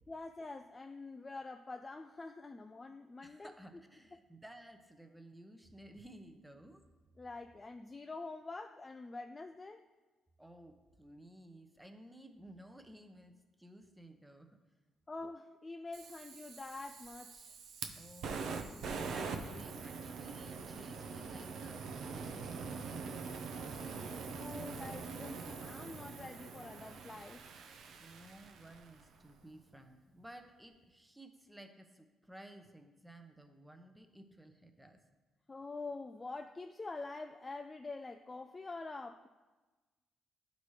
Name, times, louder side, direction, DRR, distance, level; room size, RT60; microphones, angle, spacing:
voice 1, 0.1-3.5 7.2-9.8 15.1-17.6 24.4-27.4 35.5-39.3, left 3 dB, 25° left, 6 dB, 0.3 m, -46 dB
voice 2, 3.2-6.9 10.4-14.6 17.9-23.2 28.0-35.0, right 1 dB, 5° right, 5 dB, 0.7 m, -56 dB
Fire, 15.9-29.0, right 5 dB, 75° right, 0.6 m, -44 dB
11.5 x 4.1 x 3.1 m, 1.2 s
cardioid pair, 90°, 0 cm